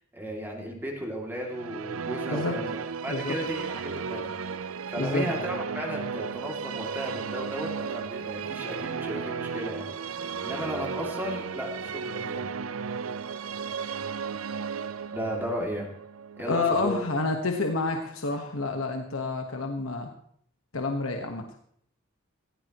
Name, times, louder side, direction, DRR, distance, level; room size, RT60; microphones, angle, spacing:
voice 1, 0.1-4.3 4.9-9.9 10.4-12.5 15.1-15.9 16.4-16.9, equal, 10° right, -1 dB, 2.6 m, -34 dB
sound 1, 1.4-17.4, right 6 dB, 90° right, 0.6 m, -35 dB
voice 2, 5.0-5.3 16.5-20.1 20.7-21.4, left 3 dB, 80° left, 3 dB, 1.4 m, -29 dB
17.5 x 16.0 x 3.0 m, 0.65 s
head